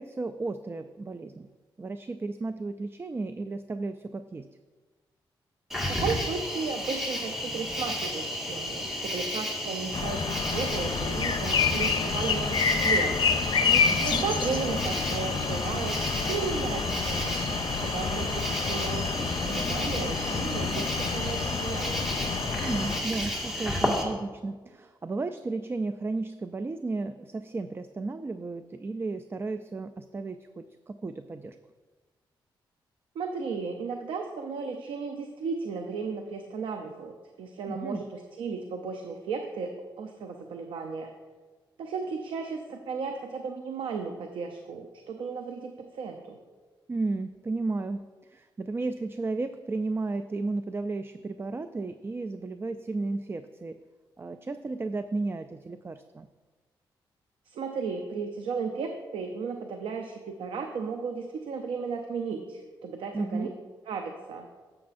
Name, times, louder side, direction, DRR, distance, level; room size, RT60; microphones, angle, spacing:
voice 1, 0.0-1.5 1.8-4.5 13.6-14.2 22.6-31.6 37.7-38.0 46.9-48.0 48.3-53.8 54.2-56.3 63.1-63.5, right 3 dB, 25° right, 10 dB, 0.4 m, -33 dB
Cricket, 5.7-24.0, left 1 dB, 5° right, 1.9 m, -32 dB
voice 2, 5.9-13.2 14.0-16.0 16.3-22.1 33.1-41.1 41.8-46.4 57.5-63.5 63.9-64.5, right 5 dB, 85° right, 4 dB, 0.6 m, -35 dB
sound 1, 9.9-23.0, left 5 dB, 60° left, 0.7 m, -29 dB
11.0 x 7.9 x 2.6 m, 1.3 s
cardioid pair, 75°, 9 cm